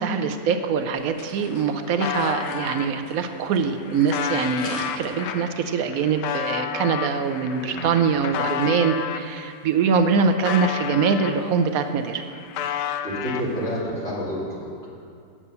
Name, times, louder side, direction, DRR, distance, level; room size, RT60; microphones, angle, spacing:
voice 1, 0.0-12.2, right 5 dB, 70° right, 8 dB, 0.9 m, -23 dB
sound 1, 0.6-5.6, left 2 dB, 65° left, 1.6 m, -43 dB
sound 2, 1.0-1.1 1.3-2.9 3.5-9.3 9.8-11.7 12.0-13.8, left 9 dB, 80° left, 1.2 m, -31 dB
voice 2, 7.5-7.9 13.0-14.9, equal, 40° left, -8 dB, 3.0 m, -29 dB
8.6 x 7.3 x 6.8 m, 2.3 s
omnidirectional pair, 1.8 m